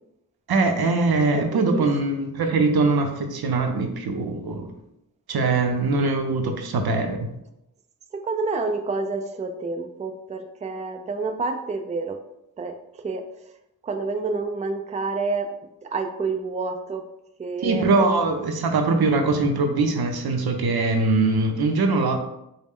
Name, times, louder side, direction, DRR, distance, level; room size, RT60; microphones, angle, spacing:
voice 1, 0.5-4.7 5.3-7.3 17.6-22.2, right 3 dB, 85° right, 5 dB, 0.6 m, -22 dB
voice 2, 1.5-1.9 8.1-12.2 12.6-13.3 13.8-15.5 15.8-17.0 17.4-18.1, right 3 dB, 20° right, 6 dB, 0.3 m, -29 dB
4.0 x 2.1 x 3.5 m, 0.85 s
cardioid pair, 55°, 37 cm